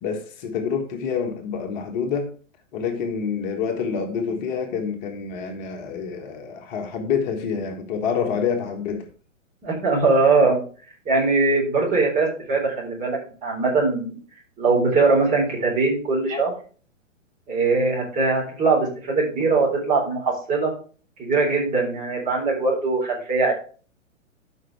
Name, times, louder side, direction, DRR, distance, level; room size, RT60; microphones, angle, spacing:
voice 1, 0.0-2.3 2.7-9.1 16.3-16.4, left 6 dB, 35° left, 1.4 m, -27 dB
voice 2, 9.6-10.6 11.1-14.2 14.6-16.5 17.5-20.7 21.2-23.5, right 3 dB, 20° right, 4.0 m, -21 dB
13.0 x 5.5 x 3.4 m
figure-of-eight pair, 115°, 38 cm